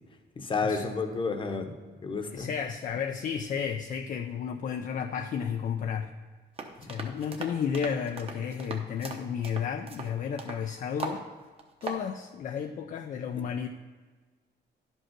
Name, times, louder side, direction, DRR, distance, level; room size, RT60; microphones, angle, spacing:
voice 1, 0.4-2.5, left 4 dB, 30° left, 5 dB, 0.9 m, -31 dB
voice 2, 2.3-6.1 6.8-11.2 11.8-13.7, left 7 dB, 45° left, 5 dB, 0.5 m, -32 dB
sound 1, 6.6-10.6 11.0-11.2 11.6-12.0, right 4 dB, 35° right, 1.0 m, -39 dB
11.0 x 5.4 x 5.8 m, 1.4 s
cardioid pair, 145°, 18 cm